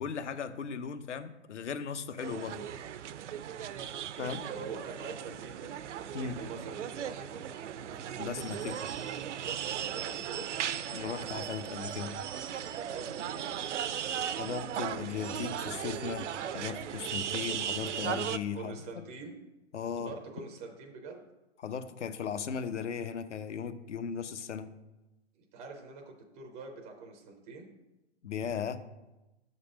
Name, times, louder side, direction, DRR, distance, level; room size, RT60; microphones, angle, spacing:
voice 1, 0.0-2.7 4.2-4.4 6.1-6.4 8.2-8.8 10.9-12.1 14.3-18.8 19.7-20.1 21.6-24.7 28.2-28.8, left 7 dB, 80° left, 10 dB, 0.8 m, -37 dB
sound 1, 2.2-18.4, right 9 dB, 80° right, 0.5 m, -37 dB
voice 2, 4.1-5.7 6.2-7.4 9.4-10.5 12.8-13.5 18.5-19.3 19.9-21.2 25.4-27.7, right 4 dB, 10° right, 2 dB, 0.4 m, -45 dB
7.3 x 4.1 x 6.3 m, 1.0 s
hypercardioid pair, 145°, 35 cm